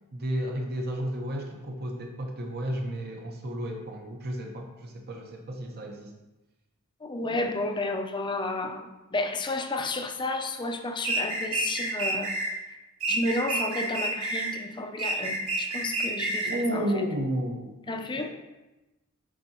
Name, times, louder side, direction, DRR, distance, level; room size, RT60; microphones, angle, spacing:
voice 1, 0.1-6.1 16.4-18.4, equal, 45° right, 2 dB, 0.8 m, -32 dB
voice 2, 7.0-12.4 13.1-16.9 17.9-18.3, left 2 dB, 20° left, 4 dB, 0.5 m, -31 dB
sound 1, 11.0-12.5 13.0-14.6 15.0-16.6, right 2 dB, 70° right, 1.2 m, -29 dB
10.5 x 3.9 x 2.8 m, 1.0 s
head